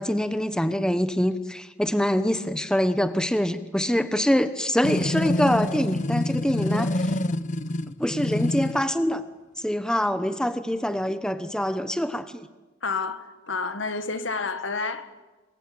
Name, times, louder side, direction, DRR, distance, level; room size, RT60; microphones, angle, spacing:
voice 1, 0.0-7.2 8.0-9.2 9.6-12.5, equal, 5° left, 1.0 m, -25 dB
sound 1, 4.8-8.8, left 1 dB, 40° left, 0.8 m, -26 dB
voice 2, 12.8-15.1, left 4 dB, 70° left, 1.9 m, -29 dB
27.5 x 21.5 x 8.9 m
head